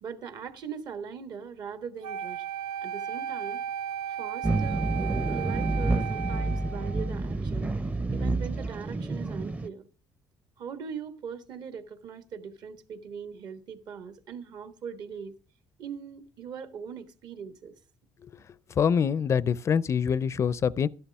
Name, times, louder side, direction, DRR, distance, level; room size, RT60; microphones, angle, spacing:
voice 1, 0.0-2.4 2.8-3.6 4.1-4.8 5.3-7.7 8.1-9.9 10.6-15.3 15.8-17.7, right 6 dB, 60° right, 1.5 m, -40 dB
Wind instrument woodwind instrument, 2.0-7.1, right 9 dB, 85° right, 1.0 m, -35 dB
sound 1, 4.4-9.7, right 2 dB, 20° right, 0.6 m, -29 dB
voice 2, 18.8-20.9, left 7 dB, 40° left, 0.4 m, -25 dB
12.5 x 11.5 x 3.5 m
cardioid pair, 105°, 8 cm